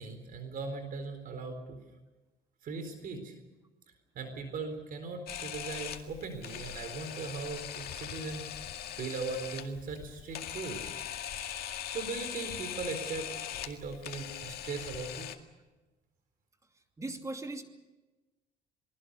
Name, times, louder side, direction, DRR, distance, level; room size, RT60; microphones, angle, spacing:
voice 1, 0.0-1.8 2.6-3.3 4.1-8.5 8.9-10.9 11.9-13.3 13.6-15.3, right 4 dB, 55° right, 8 dB, 4.1 m, -39 dB
Camera, 5.3-15.3, left 10 dB, 65° left, 2.2 m, -41 dB
voice 2, 17.0-17.6, right 2 dB, 20° right, 5 dB, 2.6 m, -38 dB
27.5 x 20.0 x 6.8 m, 1.1 s
cardioid pair, 110°, 17 cm